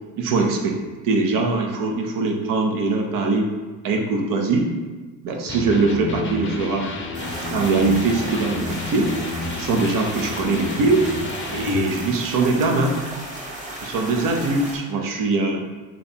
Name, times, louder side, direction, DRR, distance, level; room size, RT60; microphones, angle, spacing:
voice 1, 0.2-0.8 1.0-3.5 3.8-4.7 5.2-6.9 7.5-9.1 9.5-11.0 11.5-13.0 13.8-15.6, right 3 dB, 60° right, 2 dB, 0.8 m, -22 dB
Electric guitar, 5.5-11.9, left 2 dB, 35° left, 0.7 m, -31 dB
sound 1, 7.1-14.8, right 1 dB, 20° right, 1.2 m, -34 dB
3.3 x 2.9 x 4.2 m, 1.3 s
supercardioid pair, 75°, 37 cm